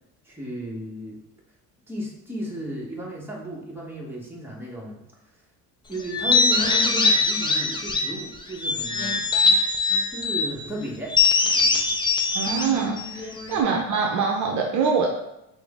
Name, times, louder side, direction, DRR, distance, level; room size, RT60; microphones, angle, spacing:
voice 1, 0.2-1.2 1.9-5.0 5.9-9.2 10.1-11.1 11.5-11.9 13.5-13.7, equal, 5° right, -3 dB, 1.0 m, -34 dB
sound 1, 6.1-8.2 8.6-10.5 11.1-13.6, left 3 dB, 15° left, 0.3 m, -22 dB
voice 2, 12.3-15.1, right 5 dB, 50° right, 0 dB, 0.6 m, -24 dB
5.9 x 2.1 x 3.5 m, 0.87 s
cardioid pair, 120°, 39 cm